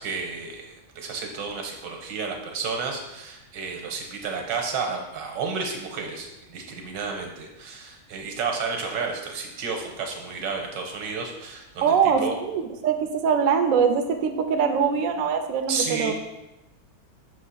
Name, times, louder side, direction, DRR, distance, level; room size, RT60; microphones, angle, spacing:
voice 1, 0.0-12.0 12.2-12.3 15.7-16.1, right 5 dB, 80° right, 2 dB, 1.6 m, -31 dB
voice 2, 11.8-16.1, right 6 dB, 65° right, 5 dB, 0.8 m, -23 dB
6.3 x 3.2 x 5.6 m, 0.98 s
omnidirectional pair, 1.9 m